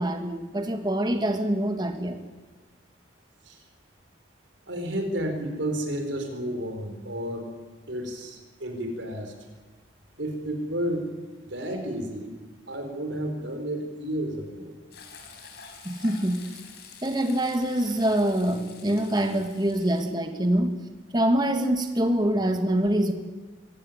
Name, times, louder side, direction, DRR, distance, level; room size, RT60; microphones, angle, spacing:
voice 1, 0.0-2.2 15.8-16.5 17.0-20.7 21.1-23.1, right 1 dB, 20° right, 6 dB, 1.6 m, -25 dB
voice 2, 4.7-7.5 7.9-9.3 10.2-11.1 11.5-12.3 12.7-14.7, right 1 dB, 70° right, 5 dB, 4.5 m, -31 dB
Frying (food), 14.9-20.1, left 5 dB, 55° left, 4.2 m, -47 dB
23.0 x 16.5 x 9.4 m, 1.3 s
head